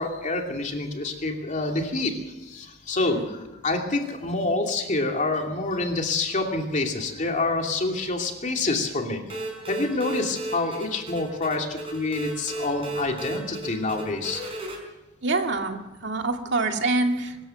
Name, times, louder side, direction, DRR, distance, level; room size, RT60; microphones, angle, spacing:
voice 1, 0.0-2.1 2.5-3.2 3.6-9.4 9.7-14.4, left 2 dB, 40° left, 3 dB, 2.7 m, -27 dB
sound 1, 9.3-14.8, right 2 dB, 30° right, 5.1 m, -35 dB
voice 2, 15.2-17.4, right 3 dB, 60° right, 4 dB, 2.3 m, -25 dB
24.0 x 13.5 x 7.9 m, 1.0 s
head